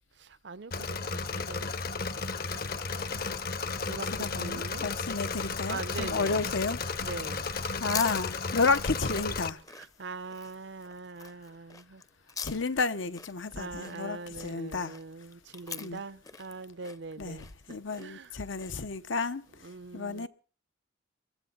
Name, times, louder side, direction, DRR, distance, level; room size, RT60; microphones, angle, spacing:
voice 1, 0.2-1.6 2.0-2.1 3.8-4.9 5.7-6.5 7.0-7.6 9.7-12.0 13.5-18.4 19.6-20.3, right 4 dB, 60° right, 0.6 m, -42 dB
Engine / Mechanisms, 0.7-9.5, left 4 dB, 50° left, 0.9 m, -34 dB
voice 2, 4.2-6.8 7.8-9.6 12.4-15.0 15.8-16.0 17.2-17.4 17.7-20.3, left 4 dB, 80° left, 1.0 m, -31 dB
sound 1, 7.9-19.5, left 5 dB, 20° left, 0.7 m, -44 dB
22.5 x 13.5 x 4.0 m
head